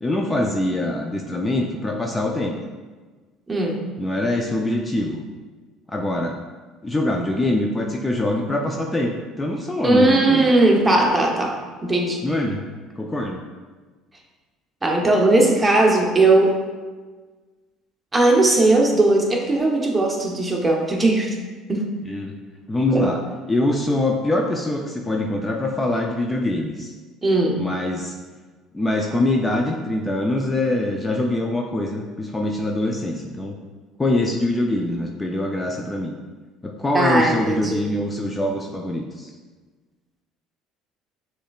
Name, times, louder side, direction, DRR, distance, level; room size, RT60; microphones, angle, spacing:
voice 1, 0.0-2.5 4.0-5.2 5.9-6.4 6.8-10.5 12.2-12.6 13.0-13.4 22.1-22.3 22.7-23.2 23.5-26.9 27.6-28.1 28.7-33.6 34.0-36.1 36.6-39.3, left 1 dB, 20° left, 1 dB, 0.5 m, -24 dB
voice 2, 3.5-3.8 9.8-12.2 14.8-16.6 18.1-21.4 21.7-21.8 22.9-23.1 27.2-27.6 36.9-37.9, right 2 dB, 20° right, 0 dB, 1.0 m, -18 dB
6.3 x 3.2 x 2.4 m, 1.4 s
hypercardioid pair, 75°, 0 cm